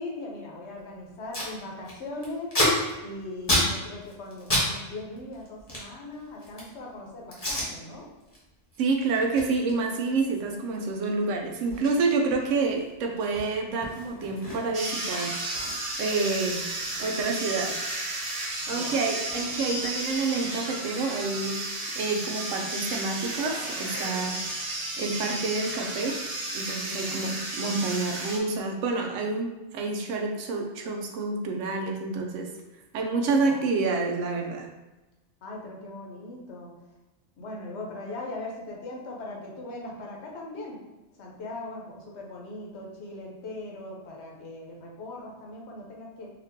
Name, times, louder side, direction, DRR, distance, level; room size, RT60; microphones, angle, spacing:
voice 1, 0.0-2.5 3.0-8.1 18.7-19.0 26.9-27.3 33.4-33.6 35.4-36.7 37.4-40.8 41.2-46.3, left 2 dB, 65° left, -1 dB, 1.0 m, -39 dB
Packing tape duct tape, 0.8-0.9 1.1-1.5 1.8-4.7 4.9-6.8 7.3-7.7 8.1-8.4 8.7-14.9 15.2-15.3 15.5-17.9 18.2-20.2, left 1 dB, 25° left, 0.9 m, -32 dB
voice 2, 8.8-16.7 17.0-17.8 18.7-21.6 21.9-26.2 26.5-32.5 32.9-34.7, right 3 dB, 85° right, 2 dB, 1.0 m, -28 dB
sound 1, 14.7-28.4, right 2 dB, 40° right, 0.6 m, -33 dB
sound 2, 23.2-24.6, equal, 60° right, 1.5 m, -44 dB
4.3 x 2.4 x 2.6 m, 1.1 s
omnidirectional pair, 1.3 m